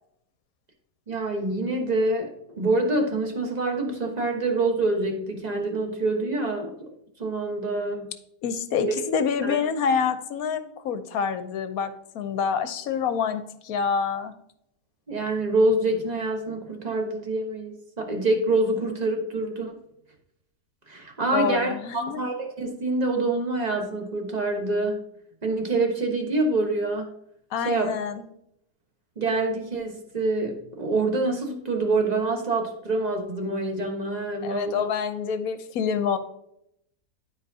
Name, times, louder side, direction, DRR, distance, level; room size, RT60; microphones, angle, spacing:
voice 1, 1.1-6.9 7.2-8.1 8.9-9.1 9.4-9.6 15.1-19.8 20.9-25.0 25.4-27.1 27.6-27.9 29.2-34.9, right 2 dB, 30° right, 2 dB, 1.2 m, -26 dB
voice 2, 8.4-14.3 21.3-22.2 27.5-28.2 34.4-36.2, left 6 dB, 65° left, 10 dB, 1.1 m, -27 dB
12.5 x 4.6 x 2.7 m, 0.77 s
omnidirectional pair, 1.7 m